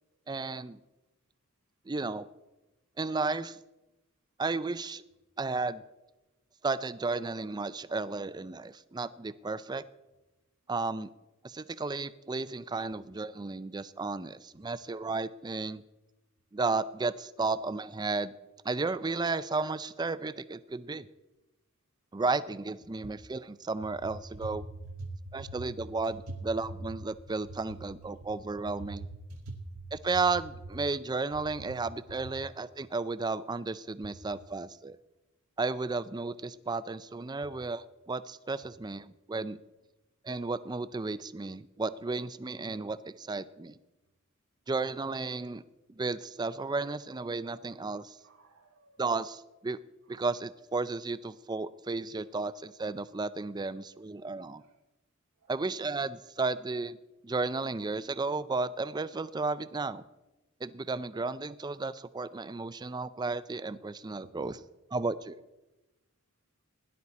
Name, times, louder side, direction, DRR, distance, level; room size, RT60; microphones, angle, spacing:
voice 1, 0.3-0.8 1.9-2.3 3.0-3.6 4.4-5.0 5.4-5.8 6.6-9.8 10.7-11.1 11.4-15.8 16.5-18.3 18.6-21.1 22.1-24.6 25.3-29.1 29.9-35.0 35.6-39.6 40.2-43.8 44.7-45.6 46.0-48.2 49.0-49.8 50.1-54.6 55.5-57.0 57.2-60.0 60.6-64.6 64.9-65.4, right 3 dB, 20° right, 15 dB, 0.4 m, -33 dB
voice 2, 24.8-25.6 26.3-26.4 29.3-29.8 48.2-49.0 55.4-55.5, right 2 dB, 85° right, 2 dB, 1.1 m, -43 dB
17.5 x 11.0 x 4.2 m, 1.0 s
head